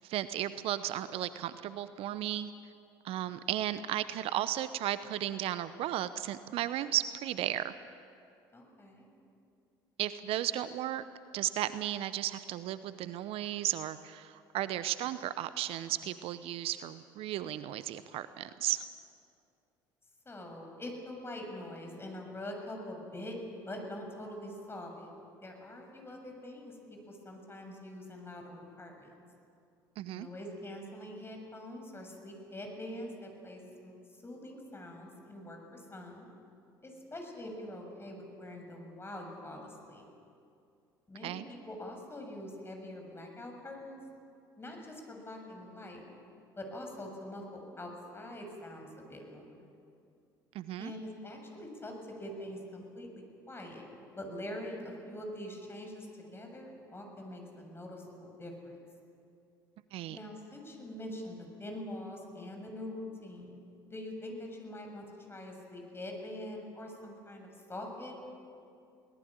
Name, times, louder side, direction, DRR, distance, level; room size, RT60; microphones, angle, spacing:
voice 1, 0.0-2.5 3.0-7.8 10.0-11.0 11.3-18.8 30.0-30.3 41.2-41.5 50.5-50.9 59.9-60.2, right 12 dB, 55° right, 14 dB, 0.8 m, -34 dB
voice 2, 8.5-9.1 20.3-23.4 23.7-25.1 25.4-29.1 30.1-36.3 36.8-40.1 41.1-44.0 44.6-46.0 46.6-49.7 50.8-58.8 60.1-63.6 63.9-68.1, left 1 dB, 20° left, 3 dB, 7.0 m, -44 dB
23.0 x 18.5 x 8.9 m, 2.5 s
hypercardioid pair, 65°, 11 cm